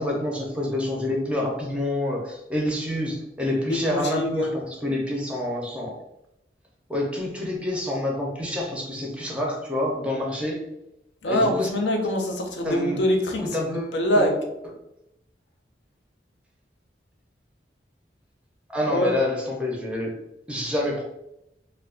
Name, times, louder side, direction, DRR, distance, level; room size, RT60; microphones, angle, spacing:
voice 1, 0.0-6.0 6.9-10.6 11.3-11.7 12.6-13.0 13.4-14.3 18.7-20.1 20.5-21.0, left 1 dB, 5° right, -1 dB, 0.5 m, -27 dB
voice 2, 3.7-4.5 11.2-14.4 18.9-19.1, left 1 dB, 80° left, 2 dB, 0.5 m, -24 dB
2.2 x 2.2 x 3.6 m, 0.85 s
head